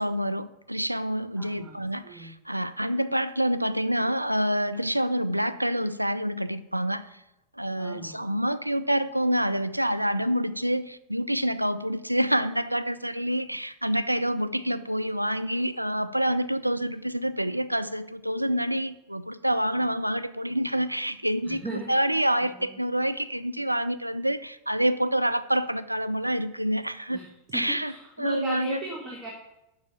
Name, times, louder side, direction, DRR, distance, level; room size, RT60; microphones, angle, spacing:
voice 1, 0.0-7.2 7.6-27.2 27.5-27.9 28.2-28.8, equal, 90° right, 11 dB, 0.4 m, -27 dB
voice 2, 1.4-2.3 7.8-8.3 21.5-21.9 27.1-29.3, right 1 dB, 20° right, -2 dB, 1.5 m, -37 dB
6.8 x 5.4 x 6.8 m, 0.91 s
figure-of-eight pair, 90°, 0 cm